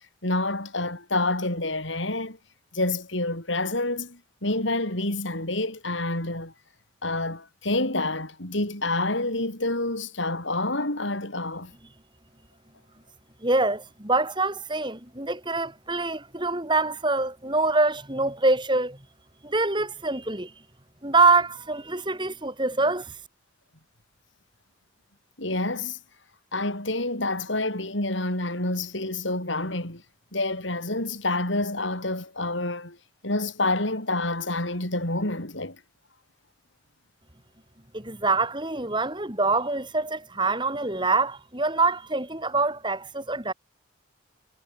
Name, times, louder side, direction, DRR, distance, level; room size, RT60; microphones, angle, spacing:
voice 1, 0.2-2.4 2.7-6.5 7.0-11.7 25.4-26.0 26.5-30.0 30.3-33.0 33.2-35.8, left 2 dB, 75° left, 7.5 m, -28 dB
voice 2, 13.4-19.0 19.4-20.5 21.0-23.2 37.9-43.5, right 3 dB, 25° right, 4.3 m, -25 dB
head